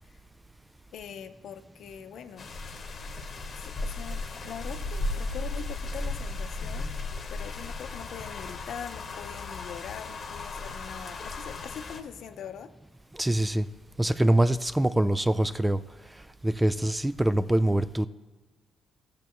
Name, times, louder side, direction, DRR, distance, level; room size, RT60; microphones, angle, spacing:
voice 1, 0.9-2.5 3.6-6.9 7.3-12.7, left 8 dB, 70° left, 8 dB, 0.7 m, -42 dB
sound 1, 2.4-12.0, left 3 dB, 45° left, 1.0 m, -35 dB
voice 2, 13.2-13.7 14.0-15.8 16.4-18.1, right 1 dB, 10° right, 14 dB, 0.3 m, -24 dB
15.0 x 6.8 x 3.0 m, 1.3 s
cardioid pair, 90°, 0 cm